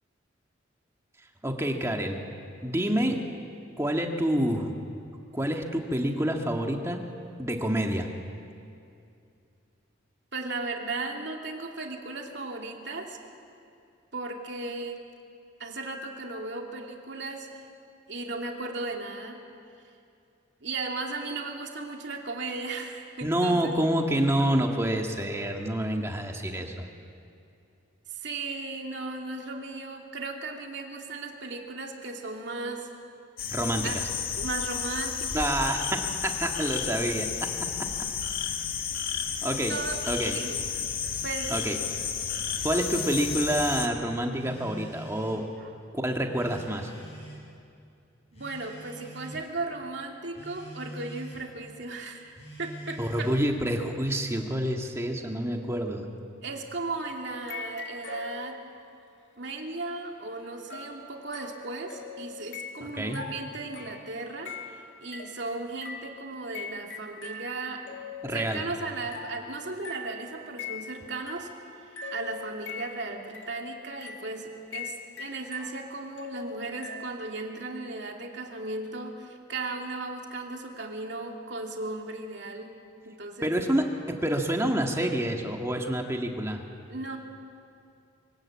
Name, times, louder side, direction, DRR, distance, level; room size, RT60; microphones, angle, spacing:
voice 1, 1.4-2.2 2.6-3.2 3.8-4.7 5.3-7.0 7.4-8.1 23.2-26.9 33.5-33.9 35.3-37.9 39.4-39.7 40.1-40.4 41.5-41.8 42.6-45.4 45.9-46.9 53.0-56.1 62.8-63.2 68.2-68.7 83.4-86.6, right 1 dB, 15° right, 2 dB, 1.7 m, -28 dB
voice 2, 10.3-13.2 14.1-15.0 15.6-17.6 18.1-19.4 20.6-23.7 28.1-32.9 33.8-34.0 34.4-35.6 39.7-40.0 40.3-40.6 41.2-41.5 45.6-45.7 48.3-53.3 56.4-58.6 59.4-71.5 71.8-82.7 83.0-83.5 86.9-87.2, right 3 dB, 65° right, 1 dB, 2.6 m, -36 dB
sound 1, 33.4-43.9, left 7 dB, 50° left, 1.8 m, -32 dB
Telephone, 38.3-39.4 40.2-41.4 42.3-43.4 44.3-45.4 46.3-47.5 48.3-49.4 50.3-51.4 52.3-53.5, right 1 dB, 35° left, 7.2 m, -45 dB
sound 2, 57.4-59.0 60.7-77.1, left 5 dB, 70° left, 1.8 m, -42 dB
24.0 x 17.5 x 8.6 m, 2.5 s
head